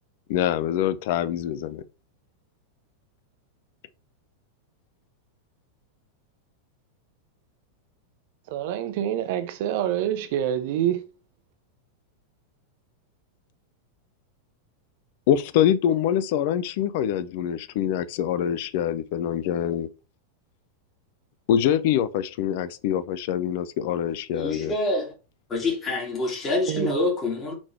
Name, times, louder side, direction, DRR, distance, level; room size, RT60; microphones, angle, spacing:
voice 1, 0.3-1.8 15.3-19.9 21.5-24.7, left 10 dB, 50° left, 0.6 m, -24 dB
voice 2, 8.5-11.0 26.7-26.9, right 10 dB, 50° right, 0.7 m, -26 dB
voice 3, 24.3-25.1 25.5-27.5, left 2 dB, 25° left, 2.5 m, -26 dB
6.2 x 4.0 x 4.5 m
figure-of-eight pair, 90°, 0 cm